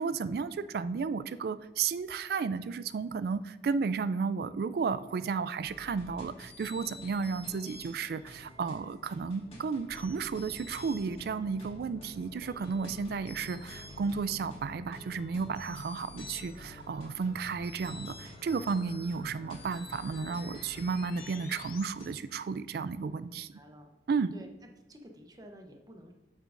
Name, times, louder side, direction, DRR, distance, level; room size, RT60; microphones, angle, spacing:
voice 1, 0.0-23.5 24.1-24.3, right 5 dB, 55° right, 14 dB, 0.3 m, -33 dB
sound 1, 5.6-22.1, left 1 dB, 35° left, 1.6 m, -50 dB
sound 2, 9.9-21.9, left 4 dB, 50° left, 0.3 m, -51 dB
voice 2, 23.3-24.0 24.3-26.1, equal, 20° right, 4 dB, 0.8 m, -52 dB
8.4 x 8.1 x 2.5 m, 1.1 s
head